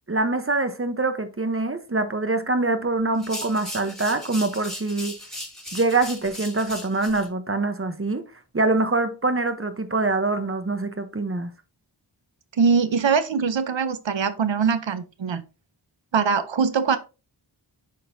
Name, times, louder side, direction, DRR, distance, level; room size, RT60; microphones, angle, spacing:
voice 1, 0.1-5.1 5.7-8.2 8.5-11.5, right 3 dB, 30° right, 0.8 m, -24 dB
sound 1, 3.1-7.3, left 1 dB, ahead, 2.8 m, -37 dB
voice 2, 12.6-15.4 16.1-17.0, right 5 dB, 75° right, 0.8 m, -22 dB
11.0 x 3.8 x 2.6 m
wide cardioid pair, 65°, 45 cm